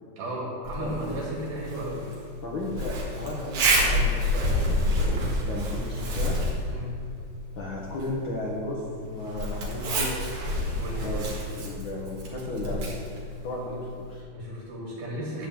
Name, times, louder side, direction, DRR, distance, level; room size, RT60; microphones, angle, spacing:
voice 1, 0.2-2.0 6.7-6.9 10.7-11.1 14.3-15.5, right 1 dB, 85° right, -4 dB, 3.8 m, -34 dB
Zipper (clothing), 0.6-14.2, equal, 60° right, 2.9 m, -29 dB
voice 2, 2.4-6.4 7.6-10.4 10.9-12.9 13.4-14.2, left 1 dB, 75° left, -3 dB, 1.1 m, -34 dB
10.5 x 5.2 x 7.4 m, 2.3 s
omnidirectional pair, 4.1 m